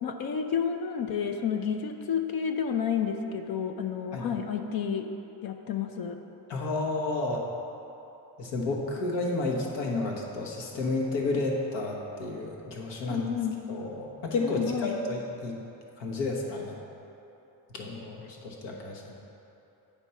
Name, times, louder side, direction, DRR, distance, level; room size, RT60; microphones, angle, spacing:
voice 1, 0.0-5.1 5.4-6.2 13.0-13.6 14.4-15.0, left 7 dB, 55° left, 6 dB, 0.6 m, -30 dB
voice 2, 6.5-7.4 8.4-13.3 13.7-15.6 16.0-16.8 17.7-19.1, left 2 dB, 75° left, 0 dB, 1.3 m, -31 dB
9.0 x 4.5 x 5.6 m, 3.0 s
cardioid pair, 145°, 44 cm